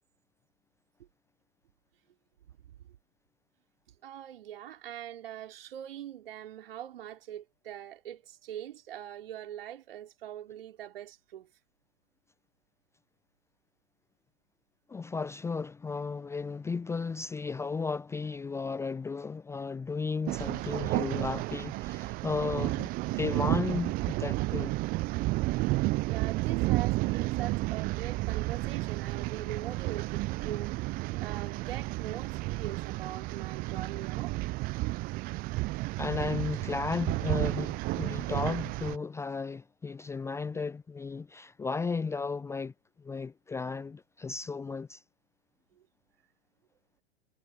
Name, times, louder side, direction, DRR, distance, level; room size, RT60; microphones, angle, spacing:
voice 1, 4.0-11.5 26.1-30.7 31.2-34.3, right 11 dB, 60° right, 4.5 m, -42 dB
voice 2, 14.9-24.7 36.0-42.7 43.0-45.0, left 4 dB, 10° left, 0.7 m, -34 dB
sound 1, 20.3-39.0, right 21 dB, 25° right, 0.7 m, -32 dB
figure-of-eight pair, 100°, 33 cm